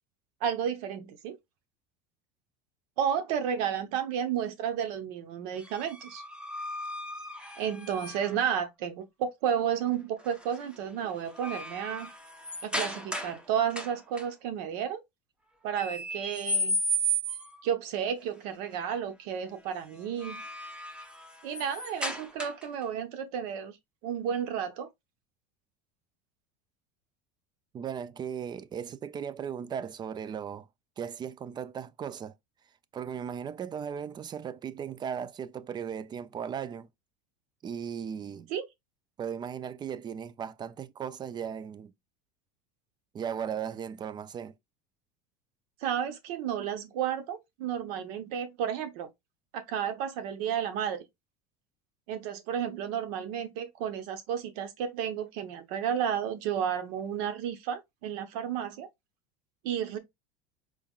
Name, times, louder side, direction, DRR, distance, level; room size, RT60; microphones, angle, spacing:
voice 1, 0.4-1.4 3.0-6.2 7.6-12.1 12.6-15.0 15.6-16.8 17.6-20.4 21.4-23.8 24.0-24.9 38.5-38.6 45.8-49.1 49.5-51.0 52.1-58.9 59.6-60.0, right 8 dB, 75° right, 0.9 m, -32 dB
sound 1, 5.6-8.5 10.2-10.6 11.0-13.4 13.7-14.2 15.8-17.7 20.0-22.8, right 1 dB, 5° right, 0.8 m, -34 dB
voice 2, 27.7-30.7 31.0-32.3 32.9-36.9 37.6-38.5 39.2-41.9 43.1-44.5, right 8 dB, 20° right, 0.3 m, -37 dB
4.6 x 3.6 x 2.3 m
supercardioid pair, 130°, 20 cm